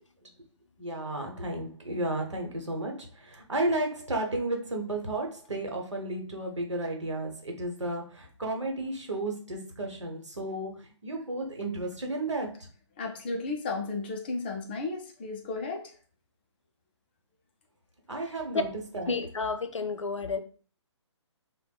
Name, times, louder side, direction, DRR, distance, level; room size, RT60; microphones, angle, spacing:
voice 1, 0.8-12.5 18.1-18.7 18.9-19.1, right 2 dB, 75° right, 0.9 m, -33 dB
voice 2, 13.0-15.9, left 3 dB, 20° left, 0.3 m, -34 dB
voice 3, 18.2-18.6 19.1-20.4, left 4 dB, 85° left, 0.4 m, -31 dB
3.3 x 2.1 x 2.2 m
figure-of-eight pair, 135°, 15 cm